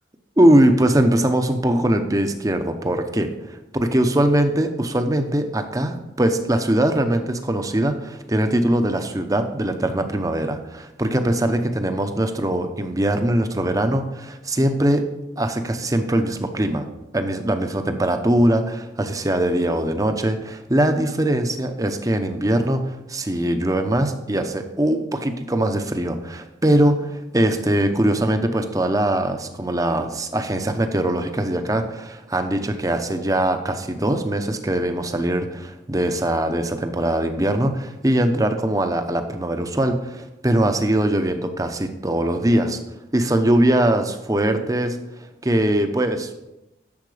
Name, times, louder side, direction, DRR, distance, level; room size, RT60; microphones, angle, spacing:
voice 1, 0.4-15.1 15.4-16.9 17.1-42.8 43.1-45.0 45.4-46.5, right 1 dB, 20° right, 7 dB, 0.8 m, -21 dB
10.5 x 7.3 x 5.0 m, 0.93 s
head